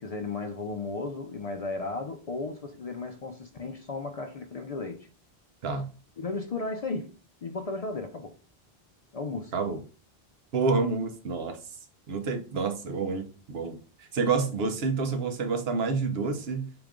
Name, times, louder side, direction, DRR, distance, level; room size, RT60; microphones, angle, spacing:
voice 1, 0.0-5.1 6.2-7.1 7.4-8.3 9.1-9.5, left 3 dB, 50° left, 0.5 m, -35 dB
voice 2, 10.5-11.6 12.1-16.7, right 4 dB, 75° right, 1.0 m, -28 dB
4.8 x 3.0 x 3.6 m
omnidirectional pair, 1.0 m